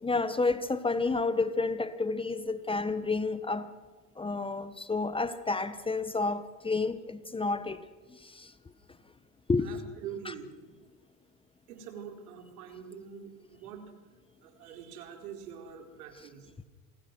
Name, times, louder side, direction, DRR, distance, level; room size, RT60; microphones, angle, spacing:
voice 1, 0.0-3.7 4.2-7.8 8.2-8.5 9.5-9.7 10.2-10.3, left 3 dB, 10° left, 1.2 m, -30 dB
voice 2, 9.6-10.5 11.7-13.8 14.4-16.5, right 8 dB, 80° right, 4.7 m, -44 dB
28.0 x 19.5 x 6.2 m
supercardioid pair, 110°, 44 cm